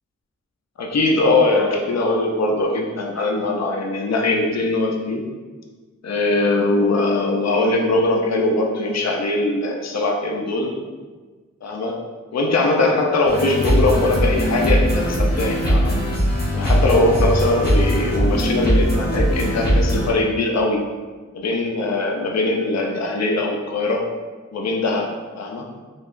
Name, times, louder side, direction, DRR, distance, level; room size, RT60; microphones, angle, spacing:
voice 1, 0.8-5.3 6.0-10.7 11.6-12.0 12.3-16.0 16.5-20.8 21.3-24.1 24.5-25.1 25.4-25.7, left 2 dB, 55° left, 1 dB, 0.6 m, -21 dB
sound 1, 13.3-20.1, equal, 30° left, 1.2 m, -20 dB
4.4 x 2.8 x 2.5 m, 1.4 s
wide cardioid pair, 55°, 31 cm